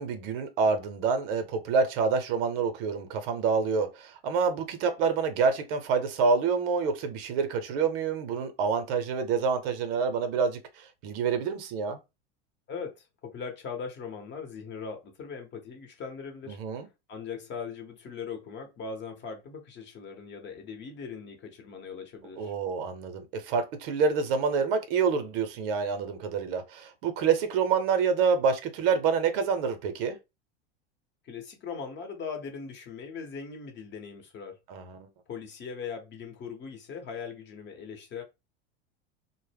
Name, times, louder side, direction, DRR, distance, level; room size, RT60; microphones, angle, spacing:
voice 1, 0.0-12.0 16.5-16.9 22.4-30.2 34.7-35.1, right 5 dB, 65° right, 0.7 m, -27 dB
voice 2, 12.7-16.6 17.1-22.5 31.2-34.6 35.3-38.2, left 5 dB, 35° left, 0.9 m, -40 dB
2.1 x 2.0 x 3.3 m
hypercardioid pair, 95°, 31 cm